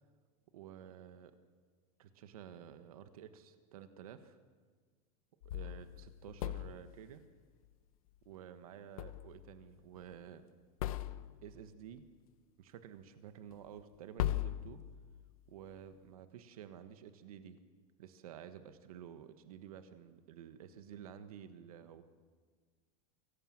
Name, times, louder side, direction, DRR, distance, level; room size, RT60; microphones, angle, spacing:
voice 1, 0.5-1.3 2.0-4.4 5.5-7.2 8.2-10.4 11.4-12.0 12.6-14.8 15.5-17.6 18.0-22.0, right 9 dB, 90° right, 9 dB, 1.6 m, -51 dB
sound 1, 5.4-7.0 9.0-9.7 9.9-10.0 10.8-11.6 13.5-13.6 14.2-15.4, left 13 dB, 80° left, 1.0 m, -39 dB
24.0 x 18.0 x 7.7 m, 1.5 s
supercardioid pair, 160°, 18 cm